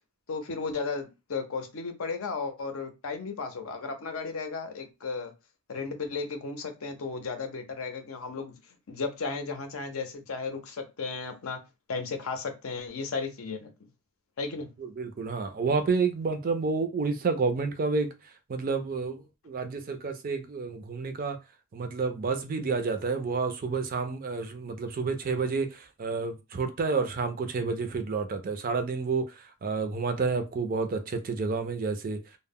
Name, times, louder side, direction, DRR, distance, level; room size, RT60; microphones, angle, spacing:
voice 1, 0.3-5.3 5.7-8.6 8.9-11.6 11.9-13.7 14.4-14.7, left 4 dB, 65° left, 0.6 m, -34 dB
voice 2, 14.8-18.1 18.5-21.4 21.7-32.2, right 4 dB, 40° right, 0.4 m, -30 dB
2.1 x 2.0 x 3.5 m
head